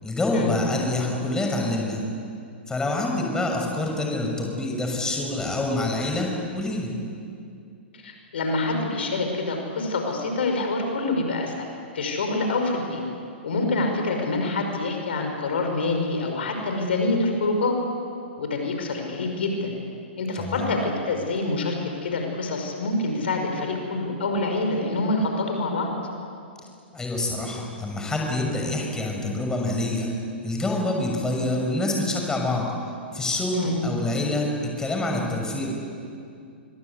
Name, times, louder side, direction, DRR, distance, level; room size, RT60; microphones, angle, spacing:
voice 1, 0.0-2.0 2.7-6.9 20.4-20.7 26.9-30.1 30.4-32.7 33.1-35.7, left 2 dB, 10° left, 0 dB, 6.2 m, -26 dB
voice 2, 7.9-11.7 11.9-13.0 13.4-17.8 18.4-19.7 20.2-25.9 33.5-33.8, left 2 dB, 70° left, 3 dB, 5.7 m, -26 dB
25.5 x 24.5 x 8.4 m, 2.4 s
hypercardioid pair, 120°, 6 cm